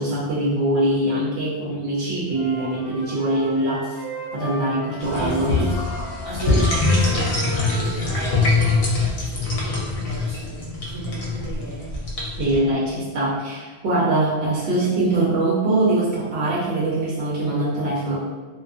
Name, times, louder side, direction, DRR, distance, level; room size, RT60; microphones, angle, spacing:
voice 1, 0.0-4.0 4.3-5.5 12.4-18.2, right 2 dB, 90° right, -6 dB, 0.9 m, -22 dB
Wind instrument woodwind instrument, 2.3-8.9, right 2 dB, 50° left, 0.4 m, -36 dB
sound 1, 5.0-12.6, left 3 dB, 70° left, 0.8 m, -23 dB
voice 2, 5.1-5.8 6.2-11.9, right 2 dB, 35° right, -9 dB, 0.8 m, -33 dB
2.4 x 2.3 x 2.3 m, 1.4 s
omnidirectional pair, 1.1 m